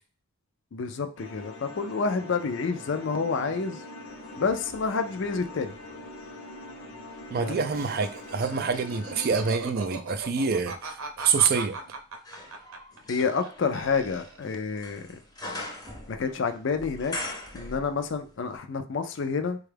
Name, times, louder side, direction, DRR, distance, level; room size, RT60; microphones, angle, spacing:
voice 1, 0.7-3.8 4.4-5.7 7.4-7.6 13.1-15.2 16.1-17.1 17.5-19.6, left 5 dB, 55° left, 0.4 m, -29 dB
sound 1, 1.2-9.5, left 1 dB, 70° left, 0.8 m, -43 dB
sound 2, 4.2-6.4 6.9-18.3 18.5-18.6, left 1 dB, 20° left, 0.6 m, -43 dB
voice 2, 7.3-11.8, right 5 dB, 45° right, 0.4 m, -26 dB
Laughter, 7.7-13.5 13.7-14.5, right 4 dB, 75° right, 0.7 m, -39 dB
4.3 x 2.3 x 3.3 m
head